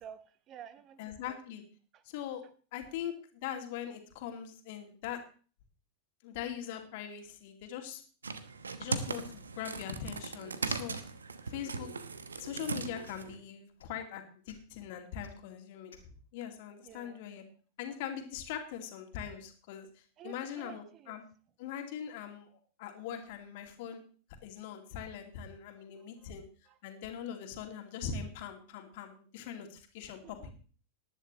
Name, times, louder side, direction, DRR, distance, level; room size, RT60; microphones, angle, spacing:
voice 1, 0.0-1.4 1.9-2.0 16.8-17.2 20.2-21.2 25.5-26.3 26.7-26.8 30.0-30.5, right 9 dB, 35° right, 14 dB, 0.9 m, -52 dB
voice 2, 1.0-1.6 2.1-2.4 2.7-5.2 6.2-8.0 8.8-11.0 11.5-11.9 12.4-16.0 16.3-17.4 17.8-19.9 20.2-21.2 21.6-22.5 22.8-24.0 24.4-26.5 26.8-30.5, left 9 dB, 50° left, 5 dB, 2.4 m, -41 dB
sound 1, 8.2-13.4, right 4 dB, 75° right, 1.1 m, -38 dB
sound 2, 10.9-11.1 11.6-11.8 12.3-12.6 13.0-13.3 13.8-13.9 14.4-14.6 15.2-15.3 15.9-16.1, left 5 dB, 65° left, 2.0 m, -57 dB
19.0 x 10.5 x 3.1 m, 0.39 s
figure-of-eight pair, 90°, 0 cm